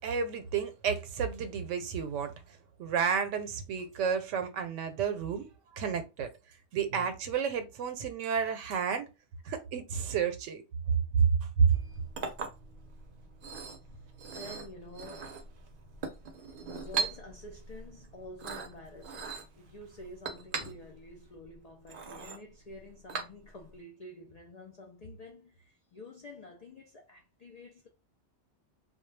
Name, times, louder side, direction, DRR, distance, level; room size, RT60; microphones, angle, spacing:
voice 1, 0.0-2.3 2.8-5.5 5.7-6.3 6.7-9.1 9.4-10.6 10.9-11.0 11.6-11.7, right 6 dB, 90° right, 0.9 m, -31 dB
Chink clink, 11.7-23.8, right 5 dB, 55° right, 0.7 m, -40 dB
voice 2, 13.9-15.4 16.7-27.9, left 1 dB, 75° left, 0.3 m, -49 dB
2.2 x 2.1 x 3.1 m
omnidirectional pair, 1.2 m